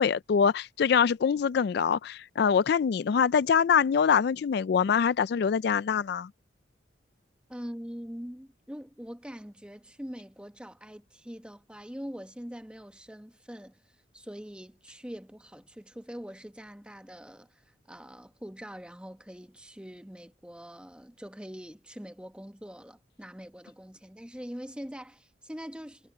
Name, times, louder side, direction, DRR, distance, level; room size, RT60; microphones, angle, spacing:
voice 1, 0.0-6.3, left 7 dB, 60° left, 0.3 m, -24 dB
voice 2, 7.5-26.1, equal, 5° right, 1.1 m, -43 dB
head